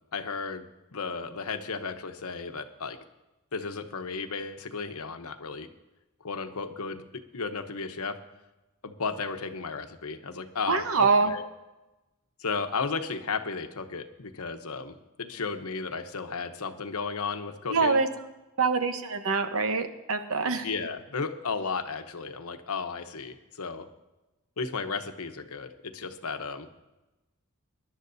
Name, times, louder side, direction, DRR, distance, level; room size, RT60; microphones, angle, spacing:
voice 1, 0.1-0.6 0.9-3.0 3.5-5.7 6.2-8.2 8.8-11.4 12.4-18.0 20.6-23.9 24.6-26.7, left 4 dB, 85° left, 8 dB, 0.9 m, -34 dB
voice 2, 10.7-11.3 17.7-18.1 18.6-20.7, right 4 dB, 70° right, 8 dB, 1.0 m, -25 dB
23.5 x 11.0 x 2.7 m, 1.0 s
head